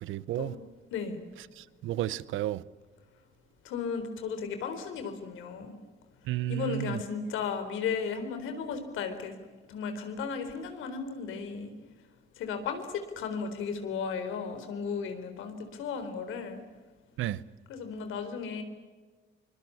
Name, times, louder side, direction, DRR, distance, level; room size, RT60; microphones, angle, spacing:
voice 1, 0.0-0.5 1.8-2.6 6.3-7.0 17.2-17.4, right 14 dB, 85° right, 0.8 m, -32 dB
voice 2, 0.9-1.2 3.6-5.7 6.5-9.3 9.7-11.7 12.4-16.6 17.7-18.6, left 6 dB, 90° left, 4.1 m, -35 dB
24.5 x 22.5 x 8.5 m
cardioid pair, 90°, 20 cm